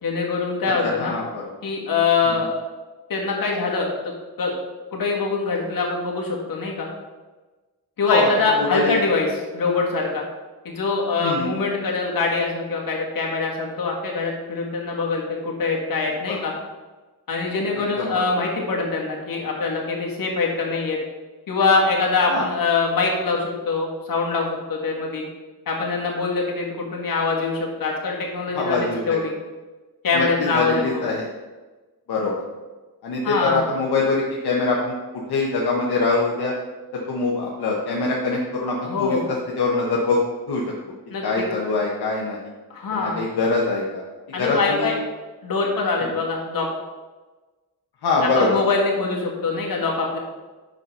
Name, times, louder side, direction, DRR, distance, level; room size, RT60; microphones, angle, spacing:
voice 1, 0.0-1.1 1.6-2.5 3.1-3.9 4.4-4.6 4.9-6.9 8.0-9.3 9.5-10.2 10.6-16.5 17.3-21.0 21.5-25.2 25.7-29.3 30.0-31.0 33.2-33.6 38.8-39.2 41.1-41.4 42.7-43.2 44.3-45.0 45.4-46.7 48.4-50.2, left 4 dB, 60° left, -1 dB, 2.0 m, -23 dB
voice 2, 0.8-1.4 2.2-2.4 8.1-8.3 8.6-8.9 11.2-11.5 16.3-16.4 17.7-18.2 22.3-22.4 28.5-29.2 30.1-31.3 32.1-32.4 33.0-34.9 35.3-36.5 36.9-40.2 40.5-40.6 41.2-42.4 42.9-44.0 44.4-44.9 46.0-46.1 48.0-48.6, left 3 dB, 80° left, -3 dB, 1.2 m, -23 dB
6.0 x 5.3 x 5.5 m, 1.2 s
cardioid pair, 85°, 38 cm